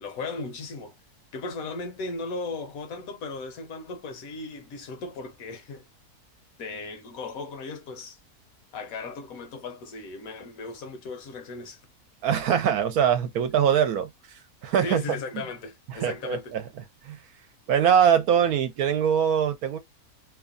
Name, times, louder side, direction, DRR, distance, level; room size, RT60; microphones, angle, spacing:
voice 1, 0.0-0.9 1.3-5.9 6.6-8.2 8.7-11.8 14.8-16.5, left 3 dB, 70° left, 1.1 m, -36 dB
voice 2, 12.2-14.1 14.6-15.2 15.9-16.6 17.0-17.2 17.7-19.8, right 8 dB, 75° right, 1.1 m, -22 dB
3.0 x 2.2 x 2.4 m
omnidirectional pair, 1.6 m